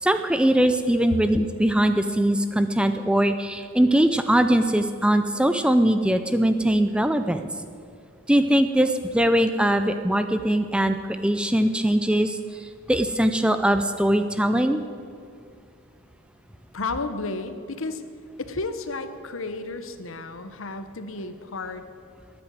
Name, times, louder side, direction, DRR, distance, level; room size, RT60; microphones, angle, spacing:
voice 1, 0.0-7.5 8.3-11.0 11.2-14.8, right 1 dB, 5° right, 9 dB, 0.4 m, -21 dB
voice 2, 16.7-18.0 18.4-21.8, left 3 dB, 70° left, 9 dB, 1.0 m, -32 dB
13.0 x 9.6 x 9.2 m, 2.4 s
head